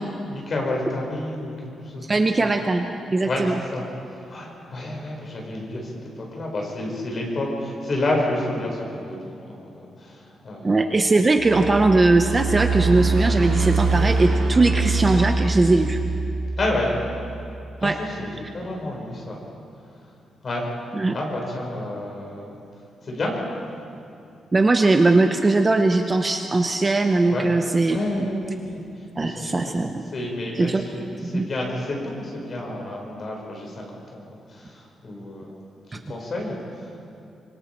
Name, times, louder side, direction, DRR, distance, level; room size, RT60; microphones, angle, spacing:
voice 1, 0.2-1.5 1.8-2.1 2.4-2.5 3.2-10.8 16.6-17.0 17.8-19.4 20.4-20.6 21.1-22.5 23.0-23.3 27.3-27.5 27.9-28.8 29.2-33.8 34.1-35.5 35.9-36.6 36.8-36.9, left 1 dB, 35° left, -1 dB, 4.5 m, -30 dB
voice 2, 2.1-3.6 10.6-16.0 17.8-18.0 20.9-21.1 24.5-28.0 29.2-30.0 30.6-30.8 31.3-31.4 35.9-36.1, right 2 dB, 20° right, 5 dB, 0.7 m, -20 dB
sound 1, 11.4-17.6, right 3 dB, 80° right, 4.3 m, -24 dB
25.0 x 24.0 x 4.5 m, 2.6 s
wide cardioid pair, 175°, 0 cm